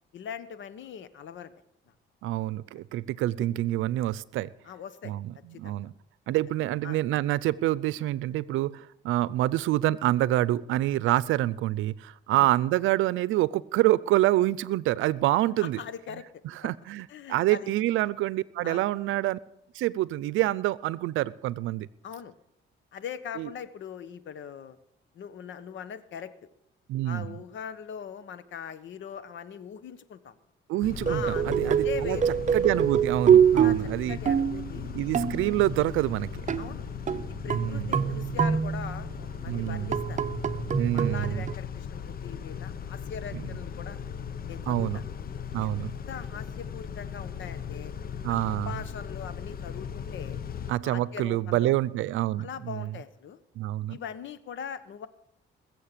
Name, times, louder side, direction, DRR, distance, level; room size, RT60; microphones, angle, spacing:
voice 1, 0.1-1.5 4.6-5.1 5.5-5.9 6.8-7.0 12.3-12.5 15.6-16.2 17.1-17.7 18.6-18.8 22.0-22.3 22.9-24.8 25.1-26.3 27.0-30.3 31.1-32.3 33.5-34.9 36.6-36.9 37.3-40.2 40.9-44.0 44.5-45.0 45.6-47.9 48.5-50.4 50.8-51.7 52.4-53.4 53.9-55.1, left 8 dB, 70° left, 14 dB, 1.2 m, -41 dB
voice 2, 2.2-4.5 5.0-5.9 6.3-15.8 16.4-19.4 19.7-21.9 23.4-23.5 26.9-27.4 30.7-32.2 32.5-34.2 34.9-36.3 36.6-36.7 37.4-38.1 39.5-39.9 40.7-41.4 43.3-43.5 44.7-45.0 45.5-45.9 48.2-48.8 50.7-52.9 53.6-54.0, right 15 dB, 90° right, 20 dB, 0.6 m, -27 dB
Car / Idling / Accelerating revving vroom, 30.8-50.7, left 7 dB, 50° left, 0.8 m, -38 dB
sound 1, 31.1-35.6 36.5-36.8 37.1-39.2 39.7-41.5, right 8 dB, 40° right, 0.7 m, -25 dB
21.0 x 7.8 x 6.8 m, 0.79 s
cardioid pair, 90°, 20 cm